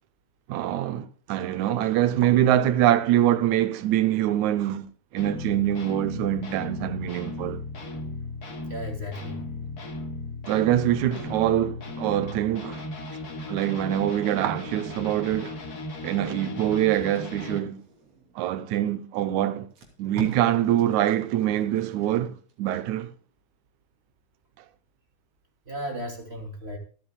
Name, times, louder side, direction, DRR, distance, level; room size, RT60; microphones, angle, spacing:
voice 1, 0.5-4.9 5.1-7.6 10.5-12.9 13.5-15.6 16.0-17.8 18.4-19.7 20.0-23.1, right 12 dB, 80° right, 2.2 m, -24 dB
sound 1, 5.2-17.6, left 2 dB, 35° left, 2.1 m, -36 dB
voice 2, 8.7-9.4 25.7-26.8, equal, 20° right, 2.7 m, -35 dB
Packing tape duct tape, 16.8-18.4 19.1-19.2 19.6-22.6 23.0-23.2, right 3 dB, 60° right, 4.1 m, -44 dB
26.5 x 9.0 x 2.3 m
omnidirectional pair, 3.4 m